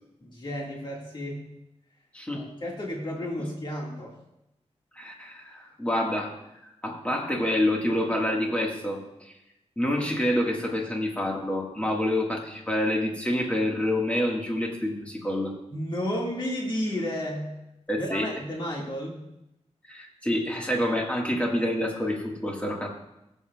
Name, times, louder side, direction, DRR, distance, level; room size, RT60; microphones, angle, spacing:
voice 1, 0.2-1.4 2.3-4.2 15.7-17.5 18.0-19.2, equal, 40° left, -2 dB, 1.8 m, -32 dB
voice 2, 2.1-2.5 4.9-6.3 6.6-9.3 9.8-15.5 17.9-18.3 19.9-22.9, left 1 dB, 10° left, -1 dB, 1.6 m, -27 dB
19.0 x 7.4 x 2.3 m, 0.88 s
wide cardioid pair, 125°, 12 cm